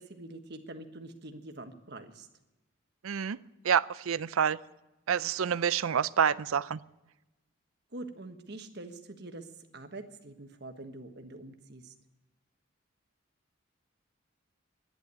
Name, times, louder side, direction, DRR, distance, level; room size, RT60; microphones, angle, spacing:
voice 1, 0.0-2.3 7.9-9.5 9.7-11.9, right 2 dB, 50° right, 6 dB, 1.4 m, -45 dB
voice 2, 3.0-3.4 3.6-4.6 5.1-6.8, right 7 dB, 85° right, 17 dB, 0.5 m, -27 dB
11.5 x 10.5 x 9.4 m, 1.0 s
head